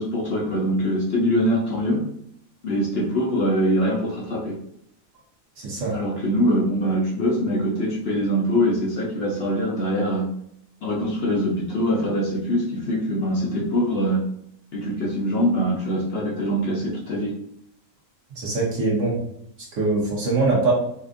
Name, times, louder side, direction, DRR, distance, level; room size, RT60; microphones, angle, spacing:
voice 1, 0.0-2.0 2.6-4.6 5.9-10.3 10.8-14.2 14.7-17.3, equal, 55° left, -3 dB, 0.8 m, -23 dB
voice 2, 5.6-5.9 18.4-19.2 19.8-20.7, right 3 dB, 65° right, -3 dB, 1.4 m, -22 dB
4.2 x 2.5 x 2.5 m, 0.71 s
omnidirectional pair, 1.5 m